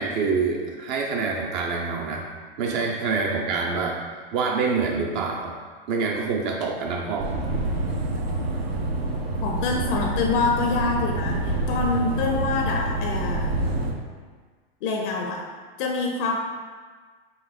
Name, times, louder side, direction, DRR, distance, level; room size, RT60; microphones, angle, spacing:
voice 1, 0.0-2.3 2.6-4.0 4.3-5.6 5.9-7.3 9.7-9.9, right 4 dB, 50° right, 0 dB, 0.5 m, -26 dB
sound 1, 7.2-13.9, right 2 dB, 85° right, 0.7 m, -27 dB
voice 2, 9.4-13.5 14.8-15.5 15.8-16.3, left 4 dB, 60° left, 1 dB, 0.5 m, -26 dB
3.8 x 2.5 x 3.6 m, 1.5 s
supercardioid pair, 130°, 30 cm